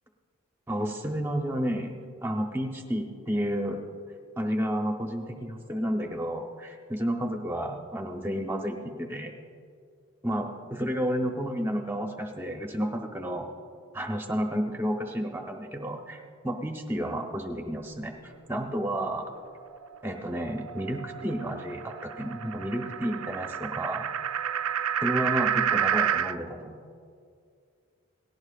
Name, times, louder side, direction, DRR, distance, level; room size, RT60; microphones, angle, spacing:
voice 1, 0.7-1.9 2.2-3.8 4.4-9.3 10.2-13.5 13.9-19.2 20.0-24.1 25.0-26.8, equal, 10° right, 2 dB, 0.9 m, -31 dB
sound 1, 19.6-26.3, right 9 dB, 85° right, 0.4 m, -30 dB
18.5 x 16.5 x 2.5 m, 2.3 s
head